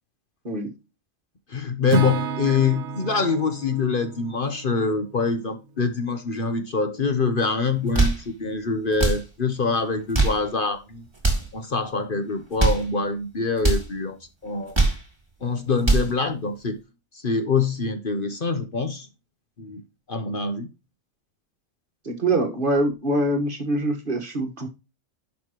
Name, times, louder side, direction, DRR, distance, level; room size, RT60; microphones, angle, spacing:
voice 1, 1.5-11.0 11.5-14.2 14.4-14.8 15.4-16.8 17.1-19.1 19.6-19.8 20.1-20.7, left 4 dB, 45° left, 1.1 m, -25 dB
Acoustic guitar / Strum, 1.9-5.9, right 4 dB, 65° right, 1.1 m, -31 dB
sound 1, 7.7-8.3 8.9-9.3 10.0-10.5 11.1-11.5 12.4-12.9 13.6-13.9 14.5-15.1 15.6-16.1, right 3 dB, 20° right, 2.5 m, -22 dB
voice 2, 22.1-24.7, right 1 dB, 45° right, 1.7 m, -24 dB
11.0 x 5.9 x 3.0 m
omnidirectional pair, 1.3 m